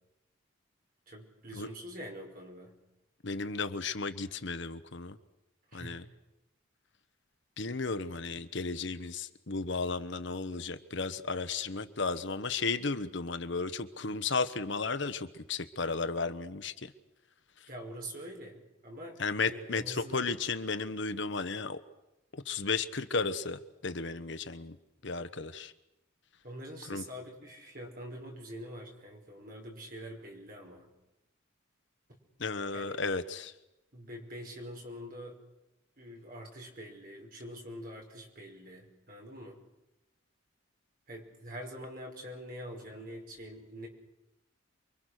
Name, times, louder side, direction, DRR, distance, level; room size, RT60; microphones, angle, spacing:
voice 1, 1.1-2.8 5.7-6.0 17.7-19.2 19.4-20.3 26.4-30.9 32.7-33.0 33.9-35.4 36.0-39.6 41.1-43.9, equal, 45° right, 1 dB, 5.6 m, -45 dB
voice 2, 3.2-5.2 5.7-6.0 7.6-16.9 19.2-21.8 22.3-24.8 25.0-25.7 26.9-27.0 32.4-33.5, left 4 dB, 60° left, 11 dB, 1.1 m, -34 dB
28.5 x 23.0 x 6.6 m, 0.93 s
head